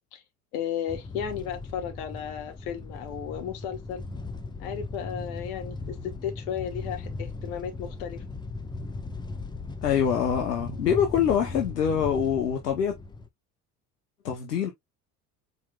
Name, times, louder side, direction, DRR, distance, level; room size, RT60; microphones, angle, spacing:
voice 1, 0.5-4.0 4.6-8.2, left 8 dB, 65° left, 1.2 m, -34 dB
sound 1, 0.9-13.3, left 3 dB, 10° left, 0.6 m, -38 dB
voice 2, 9.8-12.9 14.2-14.7, left 8 dB, 85° left, 0.8 m, -25 dB
4.3 x 3.9 x 2.2 m
figure-of-eight pair, 65°, 46 cm